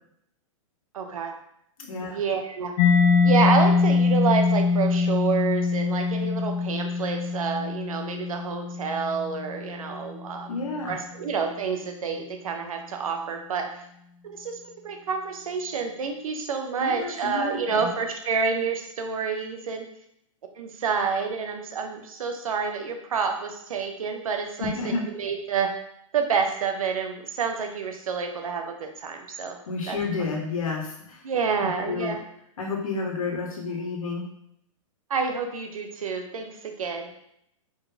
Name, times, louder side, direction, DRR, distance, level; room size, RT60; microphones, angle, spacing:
voice 1, 0.9-1.3 2.0-2.7 3.2-10.6 10.9-13.7 14.2-19.9 20.6-25.7 26.1-29.6 29.9-30.0 31.2-32.2 35.1-37.1, right 5 dB, 85° right, 4 dB, 0.9 m, -28 dB
voice 2, 1.9-2.2 10.5-10.9 16.8-17.9 24.6-25.0 29.7-31.2 31.6-32.1 32.6-34.2, left 4 dB, 85° left, 0 dB, 1.5 m, -30 dB
Mallet percussion, 2.8-10.3, left 4 dB, 40° left, 0.9 m, -23 dB
4.5 x 4.0 x 2.8 m, 0.74 s
hypercardioid pair, 140°, 17 cm